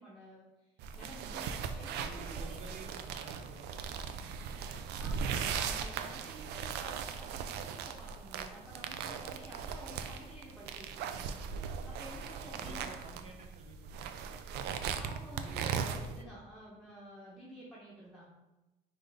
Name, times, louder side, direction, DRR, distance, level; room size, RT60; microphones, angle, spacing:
voice 1, 0.0-2.6 5.0-13.0 15.0-18.2, right 1 dB, ahead, -7 dB, 1.0 m, -51 dB
sound 1, 0.8-16.2, right 6 dB, 80° right, 0.4 m, -39 dB
voice 2, 2.0-4.2 4.5-5.3 12.0-15.7, right 3 dB, 45° right, 4 dB, 0.8 m, -53 dB
5.4 x 2.6 x 3.5 m, 1.1 s
cardioid pair, 110°, 17 cm